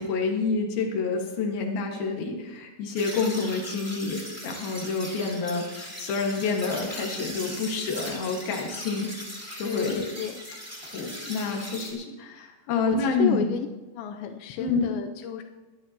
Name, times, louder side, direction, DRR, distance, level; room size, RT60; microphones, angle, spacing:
voice 1, 0.0-9.1 9.6-10.1 10.8-13.4 14.6-14.9, left 4 dB, 65° left, 1 dB, 3.4 m, -28 dB
sound 1, 2.9-11.9, equal, 5° right, 1.3 m, -39 dB
voice 2, 9.6-10.4 12.8-13.7 14.0-15.4, left 9 dB, 85° left, 5 dB, 2.9 m, -31 dB
21.5 x 11.0 x 3.0 m, 1.2 s
omnidirectional pair, 5.1 m